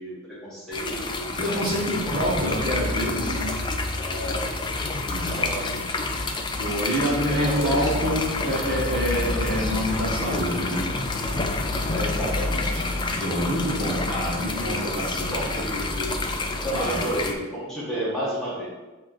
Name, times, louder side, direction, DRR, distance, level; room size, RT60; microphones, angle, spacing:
voice 1, 0.0-1.6 2.1-2.3 4.0-4.5 5.2-6.0 7.3-7.9 11.9-12.8 14.4-16.2 16.6-18.7, right 1 dB, ahead, -9 dB, 1.5 m, -32 dB
sound 1, 0.7-17.3, left 2 dB, 20° left, 0.4 m, -28 dB
voice 2, 1.4-3.6 5.0-5.5 6.5-10.9 13.0-15.5 16.7-17.2, equal, 40° right, -6 dB, 1.8 m, -27 dB
7.6 x 3.1 x 4.5 m, 1.1 s
head